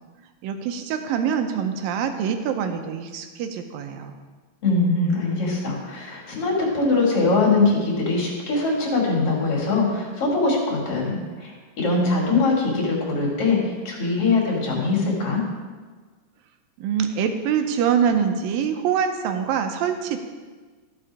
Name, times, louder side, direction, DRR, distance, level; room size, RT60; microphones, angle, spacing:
voice 1, 0.4-4.1 16.8-20.2, right 7 dB, 85° right, 6 dB, 2.5 m, -24 dB
voice 2, 4.6-11.5 11.8-13.6 13.8-15.4, left 3 dB, 45° left, -2 dB, 3.2 m, -22 dB
14.0 x 6.1 x 4.8 m, 1.4 s
omnidirectional pair, 4.0 m